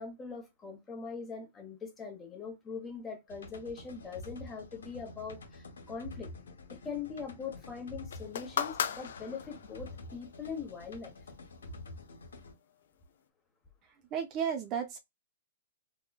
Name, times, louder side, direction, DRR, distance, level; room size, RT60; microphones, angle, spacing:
voice 1, 0.0-6.3 6.7-11.1, left 5 dB, 15° left, 1.0 m, -42 dB
sound 1, 3.3-12.5, left 2 dB, 85° left, 0.9 m, -48 dB
sound 2, 8.1-9.9 10.8-10.9, left 8 dB, 70° left, 0.4 m, -35 dB
voice 2, 13.9-15.0, right 7 dB, 35° right, 0.5 m, -34 dB
3.0 x 2.2 x 2.3 m
hypercardioid pair, 130°, 0 cm